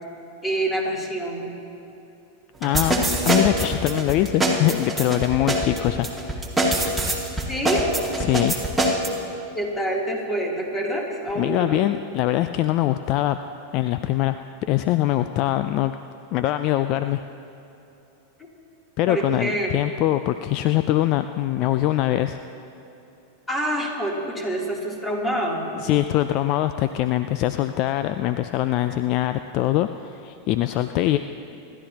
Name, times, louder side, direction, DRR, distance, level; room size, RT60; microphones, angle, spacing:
voice 1, 0.4-1.5 7.5-8.0 9.5-11.8 18.4-18.5 19.1-19.7 23.5-25.8, right 1 dB, 15° left, -2 dB, 3.2 m, -26 dB
voice 2, 2.6-6.1 8.2-8.5 11.3-13.4 13.7-16.0 16.3-17.2 19.0-22.4 25.8-31.2, left 14 dB, 50° left, 10 dB, 0.4 m, -23 dB
sound 1, 2.6-9.1, right 1 dB, 5° right, 2.3 m, -23 dB
27.5 x 12.0 x 3.0 m, 3.0 s
hypercardioid pair, 95°, 0 cm